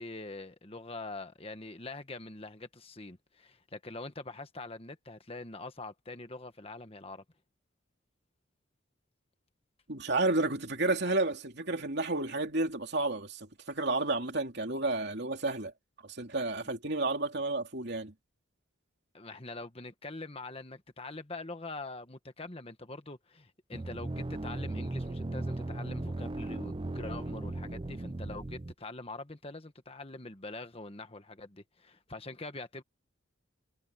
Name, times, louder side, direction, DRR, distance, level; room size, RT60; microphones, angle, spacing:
voice 1, 0.0-7.2 19.1-32.8, left 2 dB, 30° left, 1.5 m, -44 dB
voice 2, 9.9-15.7 16.0-18.1, right 2 dB, 55° right, 3.1 m, -31 dB
sound 1, 23.7-28.7, right 2 dB, 25° right, 0.5 m, -37 dB
head